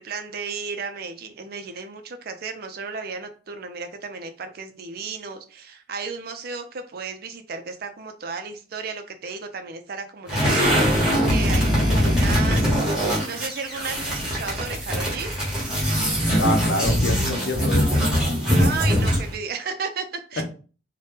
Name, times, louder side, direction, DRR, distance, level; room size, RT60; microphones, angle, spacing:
voice 1, 0.0-12.9 13.2-15.3 18.6-20.4, right 5 dB, 55° right, 7 dB, 0.5 m, -34 dB
sound 1, 10.3-19.3, equal, 5° right, 1.0 m, -22 dB
voice 2, 16.4-18.0 20.4-20.5, left 1 dB, 80° left, 4 dB, 0.7 m, -27 dB
2.7 x 2.2 x 3.4 m, 0.38 s
head